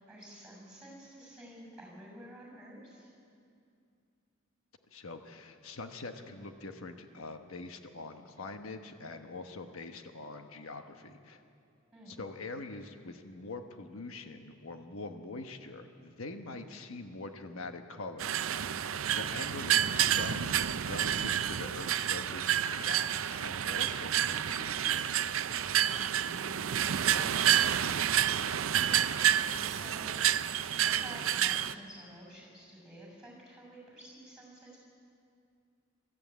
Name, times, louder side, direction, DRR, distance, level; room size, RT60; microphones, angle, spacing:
voice 1, 0.0-3.1 11.9-12.2 26.3-28.0 28.9-30.2 30.8-34.8, equal, 5° right, -1 dB, 6.5 m, -50 dB
voice 2, 4.9-11.4 12.1-18.6 19.1-22.6 22.8-25.4, left 3 dB, 80° left, 6 dB, 1.2 m, -44 dB
sound 1, 18.2-31.7, right 10 dB, 75° right, 0.5 m, -29 dB
23.5 x 14.0 x 8.2 m, 2.5 s
head